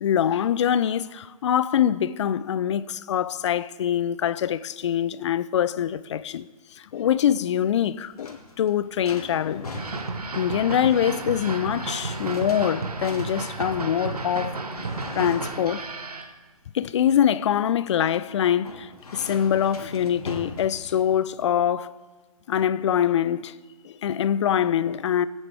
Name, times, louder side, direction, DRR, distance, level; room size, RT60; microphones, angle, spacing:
voice 1, 0.0-6.5 6.8-9.7 10.3-14.6 15.1-15.9 16.7-22.0 22.5-23.6 23.8-25.3, left 9 dB, 50° left, 0.4 m, -24 dB
sound 1, 7.8-21.4, left 3 dB, 85° left, 1.9 m, -42 dB
sound 2, 9.7-16.3, right 3 dB, 85° right, 1.1 m, -32 dB
19.0 x 9.1 x 3.4 m
figure-of-eight pair, 135°, 19 cm